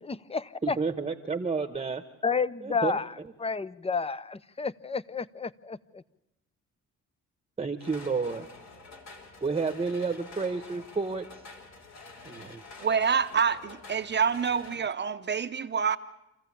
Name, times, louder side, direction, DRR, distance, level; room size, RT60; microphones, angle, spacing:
voice 1, 0.0-0.8 2.2-3.1 3.4-6.0, left 5 dB, 20° left, 18 dB, 0.7 m, -31 dB
voice 2, 0.6-2.0 2.6-2.9 7.6-8.5 9.4-11.3 12.2-12.6, right 4 dB, 20° right, 9 dB, 1.1 m, -30 dB
sound 1, 7.8-14.8, left 3 dB, 60° left, 3.4 m, -48 dB
voice 3, 12.8-16.0, right 6 dB, 35° right, 9 dB, 0.8 m, -27 dB
27.0 x 15.0 x 8.5 m, 0.93 s
cardioid pair, 90°, 30 cm